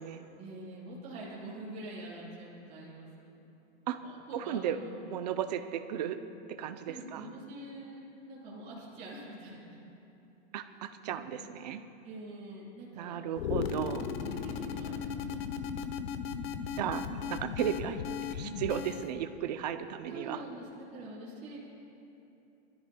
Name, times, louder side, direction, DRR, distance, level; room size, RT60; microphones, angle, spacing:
voice 1, 0.3-3.5 3.8-5.0 6.9-9.8 11.1-11.3 12.0-13.2 14.2-15.2 20.1-21.6, right 1 dB, 20° right, -9 dB, 3.6 m, -45 dB
voice 2, 4.3-4.8 5.1-6.2 6.6-7.3 10.5-11.8 12.9-14.1 16.8-18.0 18.3-20.4, right 10 dB, 40° right, 9 dB, 0.5 m, -35 dB
sound 1, 13.3-19.1, left 7 dB, 55° left, 0.7 m, -36 dB
26.5 x 13.5 x 2.2 m, 2.9 s
supercardioid pair, 175°, 35 cm